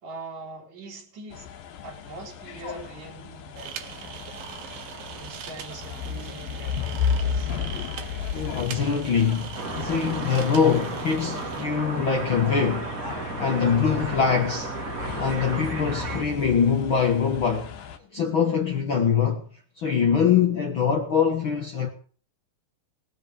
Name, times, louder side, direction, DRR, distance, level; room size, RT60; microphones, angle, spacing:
voice 1, 0.0-1.4 1.8-3.8 4.0-4.6 5.1-7.5, right 2 dB, 55° right, 4.6 m, -42 dB
sound 1, 1.3-18.0, left 7 dB, 85° left, 3.2 m, -34 dB
sound 2, 3.6-11.6, right 9 dB, 85° right, 3.1 m, -41 dB
voice 2, 8.3-12.9 13.4-14.7 15.2-17.7 18.1-19.4 19.8-21.9, left 6 dB, 50° left, 1.7 m, -23 dB
sound 3, 9.5-16.2, right 3 dB, 30° right, 1.9 m, -33 dB
19.0 x 7.8 x 7.9 m
omnidirectional pair, 4.0 m